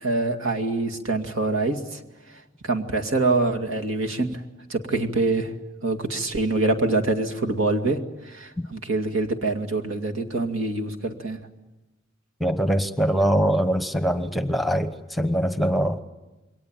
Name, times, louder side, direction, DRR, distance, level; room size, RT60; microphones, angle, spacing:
voice 1, 0.0-2.0 2.3-4.4 4.7-5.5 5.8-11.5, right 2 dB, 80° right, 2.4 m, -25 dB
voice 2, 12.4-16.0, equal, ahead, 1.0 m, -23 dB
28.0 x 22.5 x 8.9 m
head